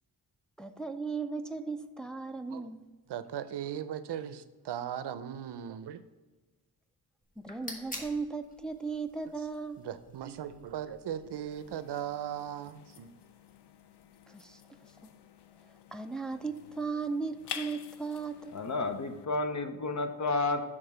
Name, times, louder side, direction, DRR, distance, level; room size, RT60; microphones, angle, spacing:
voice 1, 0.6-2.9 7.4-9.9 14.3-14.6 15.9-18.5, right 4 dB, ahead, 6 dB, 0.4 m, -36 dB
voice 2, 3.1-6.0 9.8-13.1, right 10 dB, 80° right, 12 dB, 0.6 m, -38 dB
sound 1, 7.2-12.4, left 1 dB, 20° left, 1.3 m, -49 dB
sound 2, 11.5-19.3, left 8 dB, 80° left, 0.6 m, -49 dB
voice 3, 18.5-20.6, left 3 dB, 45° left, 7 dB, 0.8 m, -31 dB
6.7 x 3.6 x 5.4 m, 1.2 s
wide cardioid pair, 100°, 41 cm